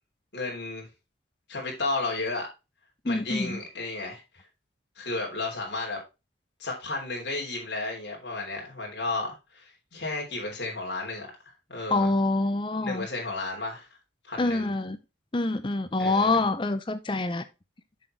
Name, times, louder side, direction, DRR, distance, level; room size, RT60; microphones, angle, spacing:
voice 1, 0.3-0.9 1.5-2.5 3.0-4.4 4.9-6.0 6.6-12.1 12.8-13.9 14.2-14.7 16.0-16.4, left 3 dB, 65° left, 3.3 m, -33 dB
voice 2, 3.1-3.6 11.9-13.1 14.4-15.0 15.3-17.4, left 2 dB, 25° left, 0.5 m, -26 dB
7.4 x 6.1 x 3.2 m
head